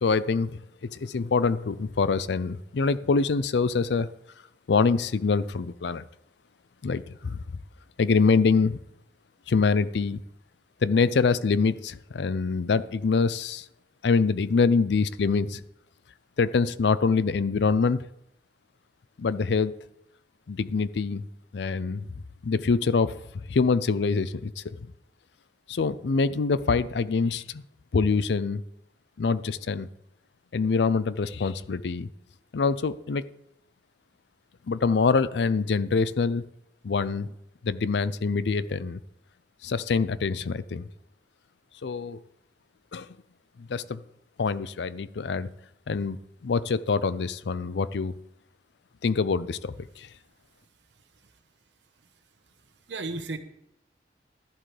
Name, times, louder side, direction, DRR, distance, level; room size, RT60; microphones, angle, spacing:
voice 1, 0.0-4.1 4.7-6.1 6.8-7.6 8.0-8.8 9.5-10.2 10.8-13.7 14.0-15.6 16.4-18.0 19.2-19.7 20.5-21.2 21.5-22.1 22.4-24.8 25.7-27.6 27.9-28.6 29.2-29.9 30.5-32.1 32.5-33.2 34.7-36.4 36.8-37.3 37.6-39.0 39.6-40.9 41.8-42.2 42.9-43.1 43.6-44.0 44.4-45.5 45.9-46.2 46.4-48.2 49.0-50.1, left 4 dB, 70° left, 16 dB, 0.5 m, -25 dB
voice 2, 50.6-51.7 51.9-53.4, right 3 dB, 85° right, 8 dB, 1.1 m, -40 dB
12.0 x 11.0 x 3.3 m, 0.81 s
head